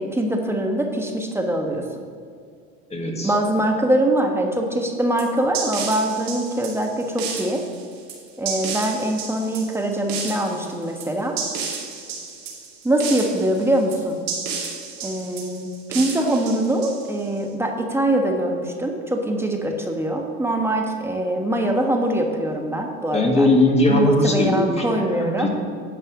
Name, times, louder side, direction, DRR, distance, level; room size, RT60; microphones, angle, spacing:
voice 1, 0.0-1.8 3.2-7.6 8.4-11.4 12.8-14.2 15.0-23.5 23.9-25.5, right 1 dB, 10° right, 2 dB, 1.3 m, -23 dB
voice 2, 2.9-3.3 23.1-25.5, left 1 dB, 20° left, 2 dB, 1.8 m, -19 dB
sound 1, 5.2-17.4, right 5 dB, 55° right, 2.4 m, -32 dB
10.0 x 5.4 x 6.4 m, 2.2 s
hypercardioid pair, 90°, 32 cm